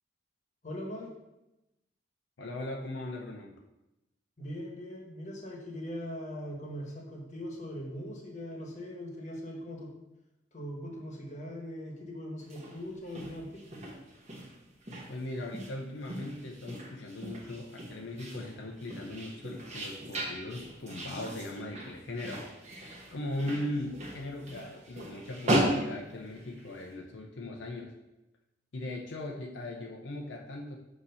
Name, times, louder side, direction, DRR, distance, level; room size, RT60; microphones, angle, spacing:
voice 1, 0.6-1.1 4.4-9.9 10.5-13.8, equal, 40° left, 0 dB, 1.2 m, -40 dB
voice 2, 2.4-3.6 15.1-22.5 23.1-28.0 28.7-30.8, left 1 dB, 75° left, 0 dB, 0.6 m, -39 dB
sound 1, 12.4-26.9, right 1 dB, 35° right, 1.2 m, -37 dB
6.8 x 2.9 x 5.5 m, 0.95 s
head